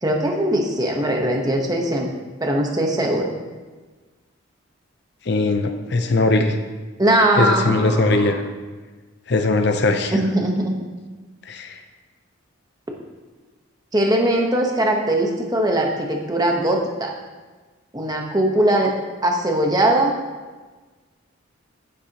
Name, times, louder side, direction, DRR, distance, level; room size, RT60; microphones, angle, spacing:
voice 1, 0.0-2.1 2.4-3.3 7.0-8.2 10.1-10.8 13.9-17.1 17.9-19.0 19.2-20.1, right 1 dB, 20° right, 1 dB, 1.1 m, -20 dB
voice 2, 5.2-6.6 7.4-8.4 9.3-10.2 11.5-11.8, left 2 dB, 55° left, 6 dB, 0.6 m, -20 dB
9.8 x 9.3 x 2.9 m, 1.3 s
head